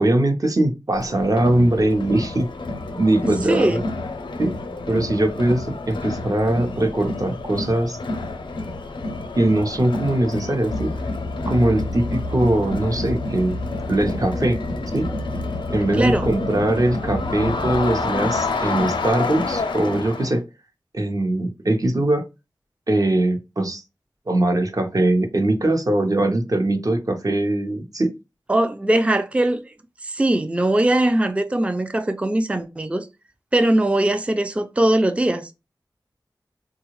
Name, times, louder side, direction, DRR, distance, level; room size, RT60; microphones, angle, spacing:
voice 1, 0.0-2.5 3.0-3.8 4.4-4.5 4.9-8.0 9.3-10.9 11.5-13.5 13.9-14.6 14.9-15.1 15.7-20.5 20.9-22.2 22.9-23.8 24.3-28.1, right 1 dB, 45° right, 0.8 m, -21 dB
Crowd, 0.9-20.4, left 3 dB, 90° left, 0.5 m, -29 dB
voice 2, 3.4-3.8 16.0-16.3 28.5-29.7 30.0-33.1 33.5-35.5, right 1 dB, 15° right, 0.4 m, -20 dB
sound 1, 10.7-18.1, left 1 dB, 70° right, 1.0 m, -32 dB
3.7 x 2.3 x 3.0 m
wide cardioid pair, 55°, 8 cm